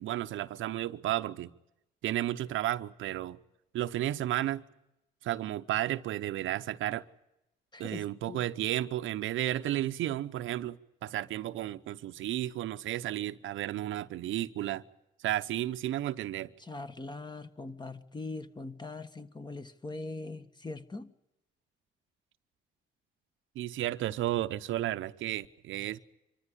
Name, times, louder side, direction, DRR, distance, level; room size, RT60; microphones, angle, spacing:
voice 1, 0.0-1.5 2.0-3.4 3.7-4.6 5.2-7.0 7.8-14.8 15.2-16.5 23.6-26.0, right 13 dB, 80° right, 0.8 m, -33 dB
voice 2, 7.7-8.5 16.6-21.1, left 3 dB, 20° left, 1.6 m, -41 dB
25.5 x 14.0 x 9.9 m
cardioid pair, 90°, 20 cm